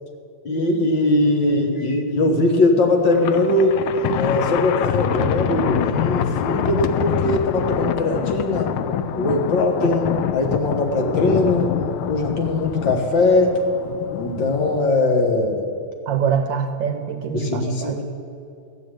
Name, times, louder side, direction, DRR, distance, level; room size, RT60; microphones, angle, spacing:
voice 1, 0.4-3.8 4.1-8.7 9.1-11.8 12.1-13.6 14.2-15.7 17.3-18.0, left 2 dB, 60° left, 2 dB, 2.1 m, -20 dB
Thunder, 3.1-14.9, left 9 dB, 85° left, 1.5 m, -25 dB
voice 2, 16.1-18.0, right 7 dB, 70° right, 8 dB, 1.2 m, -24 dB
14.5 x 6.5 x 9.0 m, 2.5 s
omnidirectional pair, 2.4 m